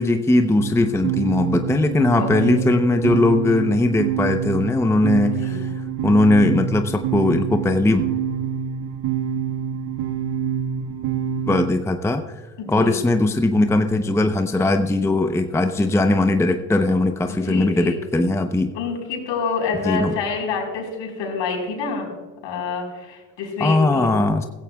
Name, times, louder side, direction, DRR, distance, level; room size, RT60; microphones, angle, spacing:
voice 1, 0.0-8.0 11.5-12.2 12.7-18.7 19.8-20.2 23.6-24.5, left 2 dB, 5° left, 7 dB, 0.8 m, -19 dB
sound 1, 0.6-11.7, right 8 dB, 65° right, 1.7 m, -26 dB
voice 2, 2.2-2.6 5.4-5.6 12.6-13.0 17.3-18.0 18.7-22.1 22.4-24.1, left 5 dB, 60° left, 2 dB, 4.5 m, -27 dB
16.0 x 16.0 x 2.4 m, 1.3 s
hypercardioid pair, 75°, 49 cm